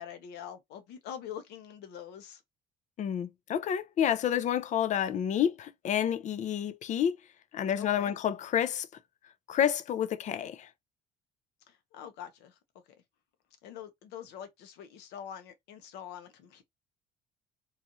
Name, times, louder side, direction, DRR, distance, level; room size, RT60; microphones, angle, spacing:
voice 1, 0.0-2.4 7.8-8.1 11.7-12.6 13.6-16.6, left 9 dB, 90° left, 0.7 m, -44 dB
voice 2, 3.0-7.2 7.5-8.9 9.5-10.7, left 9 dB, 45° left, 0.4 m, -29 dB
3.0 x 2.4 x 2.6 m
cardioid pair, 110°, 17 cm